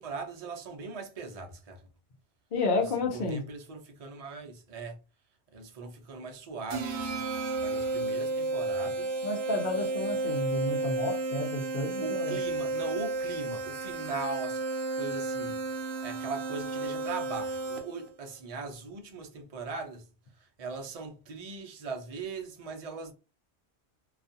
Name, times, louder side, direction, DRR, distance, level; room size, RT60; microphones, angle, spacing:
voice 1, 0.0-1.9 2.8-5.0 5.5-7.2 7.6-9.2 12.0-14.6 15.0-20.1 20.4-23.1, right 4 dB, 40° right, 0.6 m, -40 dB
voice 2, 2.5-3.5 9.2-12.4, left 3 dB, 55° left, 0.8 m, -31 dB
sound 1, 6.7-18.1, right 3 dB, 70° right, 0.8 m, -32 dB
2.3 x 2.3 x 2.6 m
omnidirectional pair, 1.1 m